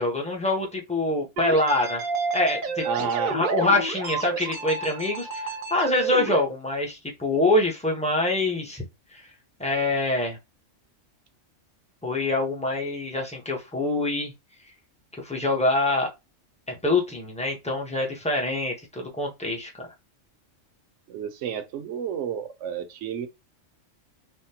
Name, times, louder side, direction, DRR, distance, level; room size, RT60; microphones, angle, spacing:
voice 1, 0.0-8.8 9.1-9.3 9.6-10.4 12.0-14.3 15.1-16.1 16.7-19.9, left 2 dB, 10° left, 0.5 m, -25 dB
sound 1, 1.4-6.4, right 4 dB, 50° right, 0.7 m, -30 dB
voice 2, 2.8-3.4 21.1-23.3, right 7 dB, 75° right, 0.9 m, -30 dB
3.5 x 2.1 x 2.8 m
omnidirectional pair, 1.3 m